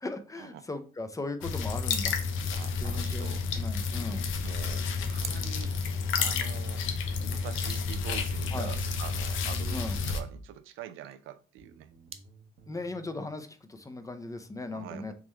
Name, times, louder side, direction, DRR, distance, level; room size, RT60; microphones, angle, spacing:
voice 1, 0.0-2.2 2.8-4.2 8.5-8.7 9.7-9.9 12.7-15.1, left 2 dB, 15° left, 0.5 m, -38 dB
sound 1, 1.4-10.2, left 5 dB, 85° left, 0.6 m, -31 dB
sound 2, 2.5-2.7 3.0-4.3 4.7-5.4 6.4-6.8 7.7-8.0 8.3-8.7 9.4-9.6 10.6-11.1 12.1-12.2, right 6 dB, 30° right, 0.5 m, -47 dB
voice 2, 2.5-3.4 4.4-5.8 6.2-6.8 7.3-11.9 14.7-15.1, right 11 dB, 90° right, 0.4 m, -44 dB
sound 3, 2.6-5.2 6.9-10.5 11.6-13.2, right 2 dB, 65° right, 1.0 m, -47 dB
3.6 x 3.0 x 3.1 m
cardioid pair, 90°, 20 cm